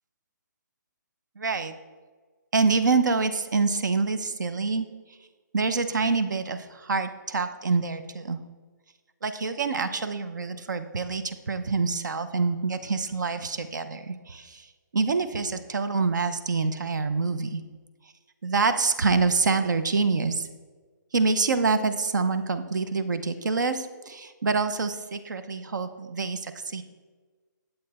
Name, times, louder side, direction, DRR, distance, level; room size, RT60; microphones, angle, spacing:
voice 1, 1.4-1.7 2.5-4.9 5.5-8.4 9.2-14.7 14.9-17.6 18.4-20.5 21.1-26.8, right 4 dB, 65° right, 10 dB, 0.7 m, -26 dB
8.9 x 7.7 x 4.2 m, 1.4 s
hypercardioid pair, 175°, 10 cm